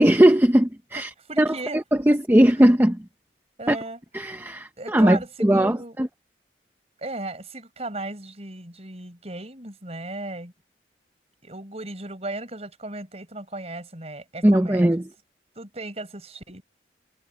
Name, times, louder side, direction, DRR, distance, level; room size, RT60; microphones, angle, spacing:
voice 1, 0.0-1.1 1.4-3.0 3.7-3.8 4.1-6.1 14.4-15.0, right 1 dB, 10° right, 0.7 m, -19 dB
voice 2, 1.3-1.8 3.6-4.0 4.8-6.0 7.0-10.5 11.4-14.9 15.6-16.6, right 2 dB, 35° right, 5.3 m, -36 dB
head